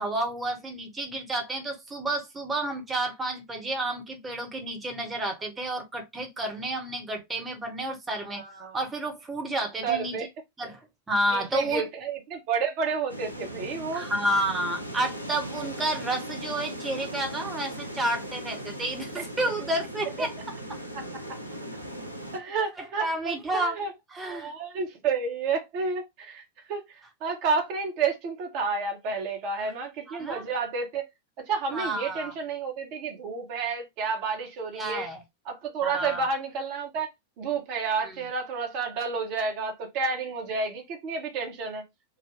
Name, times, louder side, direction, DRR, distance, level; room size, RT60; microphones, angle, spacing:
voice 1, 0.0-8.4 8.7-10.2 10.6-10.8 11.1-11.8 13.9-20.3 22.8-23.7 24.1-24.5 30.1-30.4 31.7-32.3 34.7-35.2 35.8-36.3, right 1 dB, 15° right, 1.0 m, -30 dB
voice 2, 8.2-8.8 9.8-10.3 11.3-14.1 20.2-20.3 20.9-21.4 22.3-23.9 24.2-31.1 31.5-35.1 35.4-37.1 37.4-41.8, right 5 dB, 45° right, 1.0 m, -30 dB
sound 1, 13.1-22.4, right 1 dB, 90° right, 0.6 m, -38 dB
3.7 x 2.2 x 3.3 m
figure-of-eight pair, 90°, 0 cm